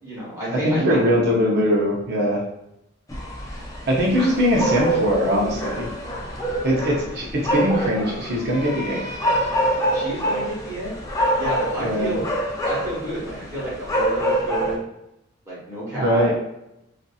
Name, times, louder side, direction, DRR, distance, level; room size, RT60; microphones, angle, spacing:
voice 1, 0.0-1.0 3.5-3.8 9.9-10.9 11.4-12.2 12.6-14.8 15.4-16.4, right 1 dB, 15° right, -7 dB, 1.1 m, -30 dB
voice 2, 0.6-2.4 3.9-5.9 6.6-9.0 11.8-12.2 16.0-16.3, equal, 55° right, -2 dB, 0.6 m, -21 dB
sound 1, 3.1-14.8, equal, 20° left, 0.4 m, -26 dB
2.6 x 2.5 x 2.3 m, 0.84 s
head